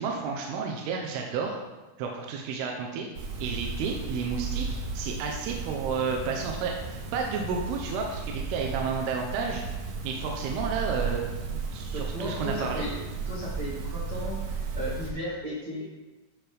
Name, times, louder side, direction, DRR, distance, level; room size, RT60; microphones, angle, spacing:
voice 1, 0.0-1.6 2.0-3.1 3.4-4.7 4.9-9.6 10.0-11.2 11.5-12.9, right 5 dB, 85° right, 1 dB, 2.8 m, -31 dB
sound 1, 3.2-15.1, right 4 dB, 70° right, 2.7 m, -34 dB
voice 2, 11.9-13.0 13.3-15.9, equal, 50° right, -7 dB, 1.3 m, -35 dB
12.5 x 6.1 x 3.4 m, 1.2 s
omnidirectional pair, 4.5 m